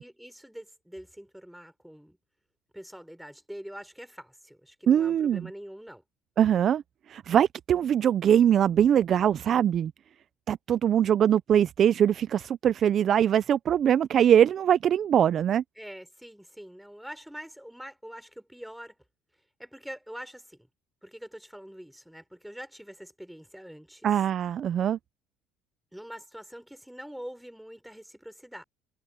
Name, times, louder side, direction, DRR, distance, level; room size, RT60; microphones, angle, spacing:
voice 1, 0.0-2.2 2.7-6.0 15.8-19.0 19.6-20.7 21.0-24.1 25.9-28.6, equal, ahead, 4.7 m, -44 dB
voice 2, 4.9-5.5 6.4-6.8 7.1-9.9 10.5-15.6 24.0-25.0, right 9 dB, 40° right, 0.4 m, -22 dB
cardioid pair, 135°, 0 cm